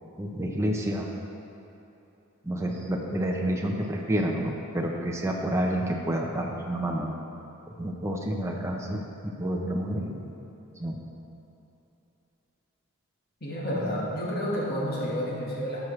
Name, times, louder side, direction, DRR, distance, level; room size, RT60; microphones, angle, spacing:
voice 1, 0.2-1.1 2.4-7.1 7.8-10.3 10.8-11.0, right 1 dB, 15° right, 0 dB, 0.7 m, -29 dB
voice 2, 13.4-15.8, equal, 45° left, -5 dB, 1.5 m, -30 dB
12.0 x 6.1 x 3.2 m, 3.0 s
head